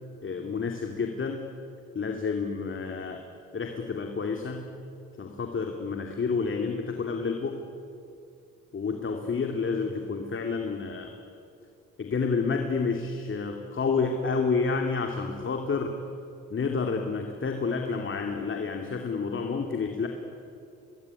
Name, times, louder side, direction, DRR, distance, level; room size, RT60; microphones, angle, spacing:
voice 1, 0.2-1.4 1.9-3.2 3.5-4.7 5.2-7.6 8.7-11.1 12.0-16.0 16.5-20.1, left 4 dB, 40° left, 3 dB, 2.6 m, -29 dB
23.5 x 20.5 x 9.7 m, 2.5 s
cardioid pair, 90°, 30 cm